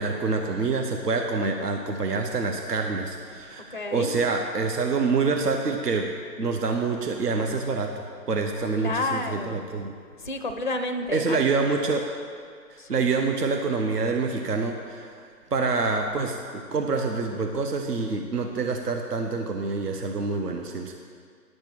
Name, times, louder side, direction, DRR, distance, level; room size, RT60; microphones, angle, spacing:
voice 1, 0.0-6.1 6.4-7.9 8.3-9.9 11.1-12.0 12.7-20.9, right 4 dB, 70° right, 3 dB, 1.1 m, -26 dB
voice 2, 3.7-4.1 8.8-9.6 10.2-11.4 12.8-13.1, left 2 dB, 35° left, 6 dB, 0.4 m, -30 dB
11.0 x 6.8 x 6.0 m, 2.1 s
figure-of-eight pair, 140°, 48 cm